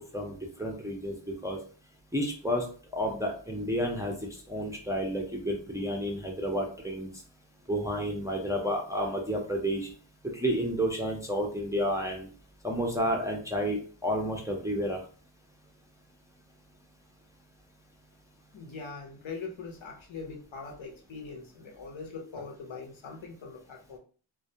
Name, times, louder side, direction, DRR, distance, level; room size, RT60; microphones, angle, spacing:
voice 1, 0.1-1.1 1.4-1.6 2.1-2.7 2.9-4.1 4.5-7.1 7.7-9.9 10.3-12.3 12.6-15.0, equal, 5° right, 0 dB, 0.5 m, -30 dB
voice 2, 18.5-24.0, left 4 dB, 70° left, 2 dB, 0.7 m, -42 dB
2.3 x 2.2 x 2.7 m, 0.40 s
wide cardioid pair, 60°, 49 cm